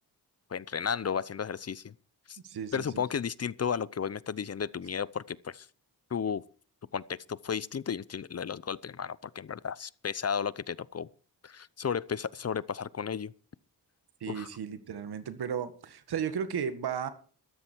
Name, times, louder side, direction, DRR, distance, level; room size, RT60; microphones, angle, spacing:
voice 1, 0.5-1.9 2.3-2.4 2.7-5.7 6.1-6.4 6.9-11.1 11.4-13.3 14.3-14.5, left 7 dB, 40° left, 0.7 m, -33 dB
voice 2, 2.4-3.0 14.2-17.1, right 7 dB, 75° right, 1.9 m, -34 dB
13.5 x 13.5 x 4.6 m
cardioid pair, 60°, 39 cm